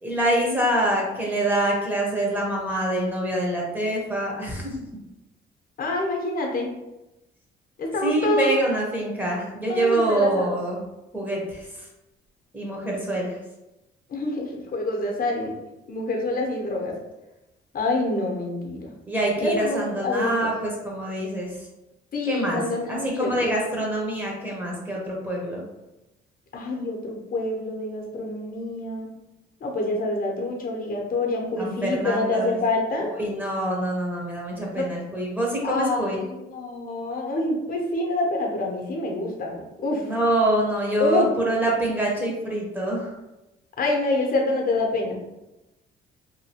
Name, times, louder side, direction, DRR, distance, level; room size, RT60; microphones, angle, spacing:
voice 1, 0.0-4.7 8.0-10.8 11.1-11.7 12.5-13.4 19.1-21.5 22.2-22.6 22.9-25.6 31.6-32.6 33.0-36.2 40.0-43.1, right 1 dB, 10° right, -3 dB, 1.0 m, -25 dB
voice 2, 5.8-6.7 7.8-8.5 9.7-10.6 14.1-15.5 15.9-17.0 17.7-18.9 19.4-20.5 22.1-23.5 26.5-29.1 29.6-33.1 34.7-34.9 35.6-40.1 41.0-41.3 43.8-45.2, left 2 dB, 45° left, 1 dB, 0.8 m, -26 dB
2.8 x 2.6 x 2.8 m, 0.97 s
cardioid pair, 90°, 20 cm